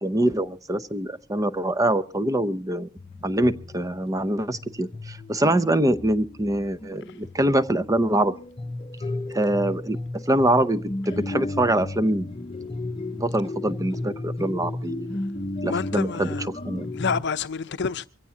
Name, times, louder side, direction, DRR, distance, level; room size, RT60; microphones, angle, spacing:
voice 1, 0.0-2.9 3.2-8.4 9.3-12.3 13.1-15.2 15.6-16.3 16.6-16.9, right 1 dB, 15° right, 0.7 m, -24 dB
sound 1, 3.0-17.2, left 2 dB, 25° left, 0.8 m, -34 dB
voice 2, 15.7-16.5 16.9-18.1, left 5 dB, 60° left, 0.7 m, -28 dB
23.5 x 16.5 x 2.8 m
head